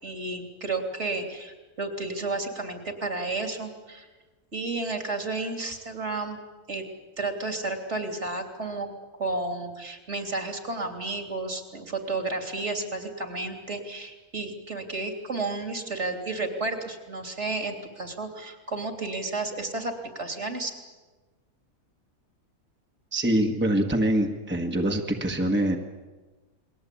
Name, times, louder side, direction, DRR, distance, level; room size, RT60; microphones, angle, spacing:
voice 1, 0.0-4.1 4.5-6.4 6.7-6.8 7.2-8.9 9.2-20.7, right 3 dB, 55° right, 4 dB, 3.6 m, -32 dB
voice 2, 23.1-25.8, right 1 dB, 10° right, 2 dB, 1.7 m, -24 dB
29.5 x 22.0 x 8.6 m, 1.3 s
omnidirectional pair, 1.4 m